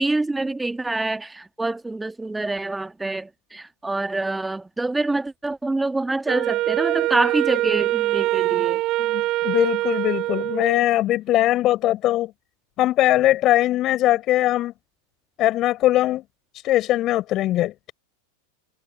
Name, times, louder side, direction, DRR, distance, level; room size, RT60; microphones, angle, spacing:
voice 1, 0.0-8.8, right 2 dB, 5° right, 1.8 m, -26 dB
Wind instrument woodwind instrument, 6.3-10.9, right 17 dB, 35° right, 1.1 m, -24 dB
voice 2, 9.0-12.3 12.8-14.7 15.4-16.2 16.6-17.9, left 15 dB, 35° left, 5.5 m, -21 dB
figure-of-eight pair, 90°, 0 cm